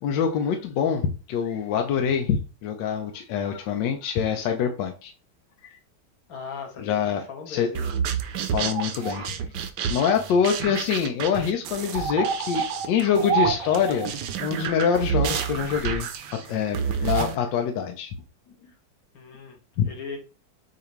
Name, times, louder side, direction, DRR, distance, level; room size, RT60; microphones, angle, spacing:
voice 1, 0.0-5.1 5.6-5.8 6.8-7.7 8.5-9.4 9.9-18.1 19.8-19.9, left 7 dB, 80° left, 4 dB, 1.3 m, -25 dB
voice 2, 6.3-8.0 19.1-20.2, left 5 dB, 55° left, 2 dB, 1.5 m, -39 dB
sound 1, 7.7-17.4, right 7 dB, 75° right, 1.2 m, -28 dB
6.8 x 2.5 x 3.0 m, 0.35 s
omnidirectional pair, 2.0 m